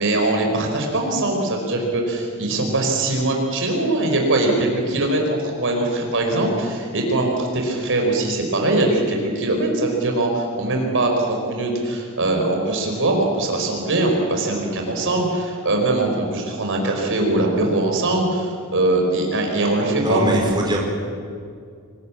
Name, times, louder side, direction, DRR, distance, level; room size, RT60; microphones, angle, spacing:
voice 1, 0.0-20.2, right 2 dB, 60° right, 1 dB, 5.0 m, -21 dB
voice 2, 20.0-20.8, right 1 dB, 20° right, -1 dB, 5.0 m, -21 dB
26.0 x 19.5 x 8.6 m, 2.3 s
head